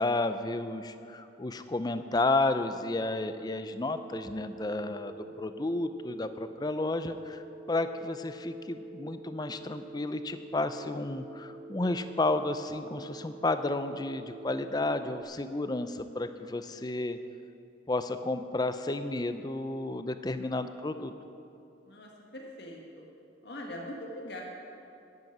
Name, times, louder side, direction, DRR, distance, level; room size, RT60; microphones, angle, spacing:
voice 1, 0.0-5.1 5.4-17.2 17.9-21.1, left 2 dB, 20° left, 10 dB, 0.5 m, -32 dB
Telephone, 3.0-15.2, right 2 dB, 70° right, 1.1 m, -47 dB
voice 2, 4.8-5.4 6.4-6.5 21.8-23.0 23.4-24.4, left 1 dB, 55° left, -1 dB, 1.6 m, -43 dB
11.0 x 9.5 x 7.9 m, 2.7 s
head